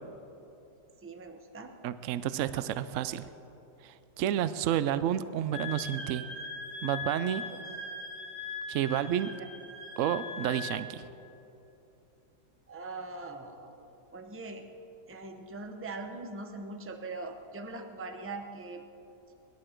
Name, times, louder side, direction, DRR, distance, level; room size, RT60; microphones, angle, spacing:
voice 1, 1.0-1.7 9.4-9.5 12.7-14.7 15.1-18.9, right 3 dB, 10° right, 5 dB, 0.6 m, -42 dB
voice 2, 1.8-3.3 3.8-6.2 6.8-7.4 8.7-9.3 10.0-11.1, right 11 dB, 75° right, 14 dB, 0.7 m, -30 dB
Wind instrument woodwind instrument, 5.5-10.8, left 4 dB, 70° left, 3.1 m, -40 dB
25.0 x 11.5 x 4.5 m, 2.9 s
omnidirectional pair, 1.9 m